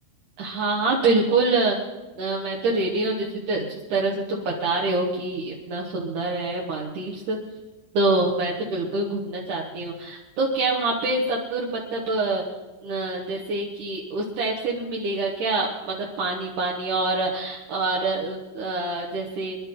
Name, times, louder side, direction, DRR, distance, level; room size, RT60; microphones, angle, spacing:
voice 1, 0.4-1.8 2.2-7.4 7.9-12.4 12.8-19.6, right 2 dB, 60° right, -3 dB, 2.1 m, -26 dB
25.5 x 11.5 x 3.9 m, 1.1 s
omnidirectional pair, 5.7 m